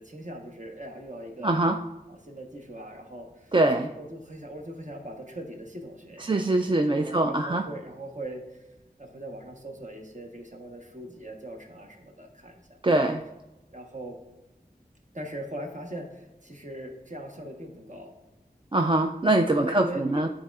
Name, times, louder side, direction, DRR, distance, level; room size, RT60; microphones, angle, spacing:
voice 1, 0.0-1.6 2.1-6.4 6.9-8.7 9.0-12.8 13.7-14.2 15.1-18.1 19.5-20.2, right 1 dB, 45° right, 2 dB, 1.0 m, -40 dB
voice 2, 1.4-1.8 3.5-3.9 6.3-7.7 12.8-13.2 18.7-20.3, right 2 dB, 30° right, 4 dB, 0.3 m, -23 dB
10.0 x 4.1 x 2.3 m, 1.0 s
wide cardioid pair, 45°, 17 cm